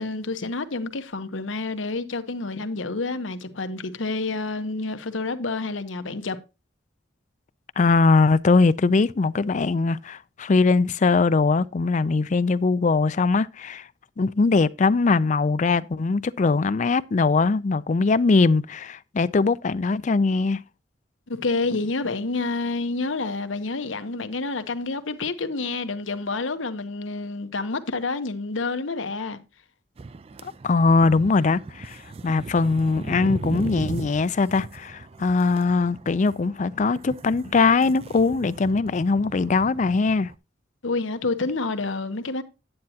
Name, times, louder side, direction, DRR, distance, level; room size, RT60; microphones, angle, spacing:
voice 1, 0.0-6.4 21.3-29.4 40.8-42.4, left 3 dB, 90° left, 1.0 m, -28 dB
voice 2, 7.8-13.9 14.2-20.6 30.6-40.3, left 4 dB, 40° left, 0.4 m, -21 dB
sound 1, 30.0-40.4, right 3 dB, 30° right, 0.4 m, -38 dB
9.5 x 8.9 x 2.8 m
head